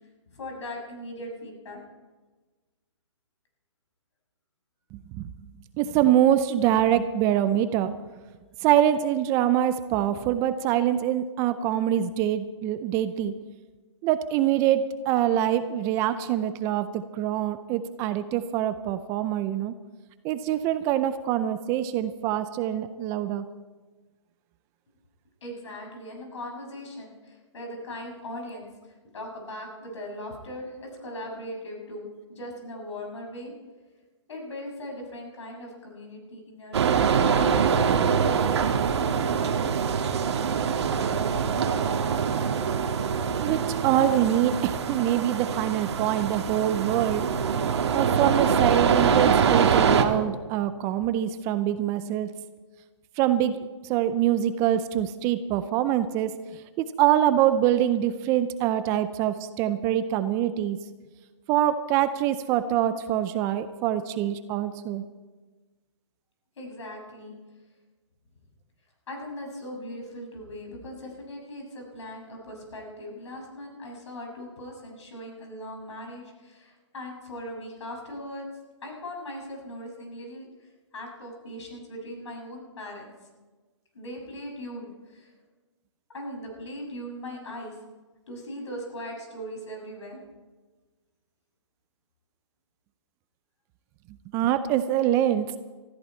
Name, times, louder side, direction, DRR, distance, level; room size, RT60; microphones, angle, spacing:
voice 1, 0.3-1.8 25.4-33.5 34.3-37.9 66.6-67.3 69.1-78.5 78.8-83.1 83.9-85.3 86.1-87.8 88.3-90.2, left 1 dB, 70° left, 1 dB, 6.9 m, -39 dB
voice 2, 4.9-5.3 5.8-8.0 8.6-13.3 14.0-19.7 20.2-23.4 43.4-47.3 47.9-52.3 53.2-53.6 53.8-60.8 61.5-65.0 94.3-95.5, right 11 dB, 20° right, 11 dB, 0.5 m, -24 dB
sound 1, 36.7-50.0, right 6 dB, 60° right, 1.7 m, -24 dB
19.5 x 14.0 x 4.4 m, 1.3 s
hypercardioid pair, 150°, 16 cm